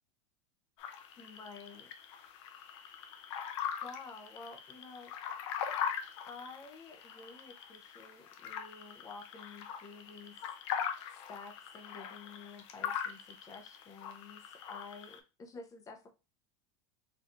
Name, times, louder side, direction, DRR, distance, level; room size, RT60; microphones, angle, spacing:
sound 1, 0.8-15.2, left 8 dB, 70° left, 0.6 m, -41 dB
voice 1, 1.2-1.9 3.8-5.1 6.2-10.3 11.3-16.1, left 4 dB, 20° left, 5 dB, 0.6 m, -50 dB
4.4 x 2.6 x 2.5 m, 0.29 s
supercardioid pair, 140°, 16 cm